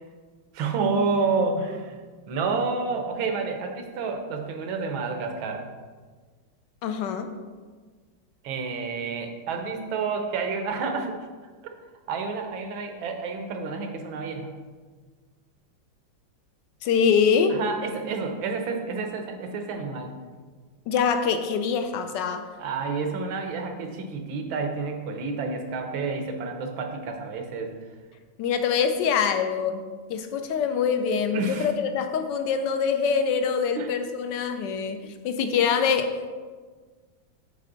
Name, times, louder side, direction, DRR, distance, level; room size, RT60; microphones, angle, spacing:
voice 1, 0.5-2.0 2.3-5.6 8.4-11.3 12.1-14.5 17.5-20.1 22.6-27.7 31.3-31.7 33.8-33.9, right 4 dB, 80° right, 4 dB, 1.6 m, -29 dB
voice 2, 6.8-7.3 16.8-17.6 20.9-22.5 28.4-29.8 30.1-36.3, left 6 dB, 70° left, 8 dB, 1.1 m, -24 dB
9.3 x 4.5 x 3.8 m, 1.5 s
omnidirectional pair, 2.2 m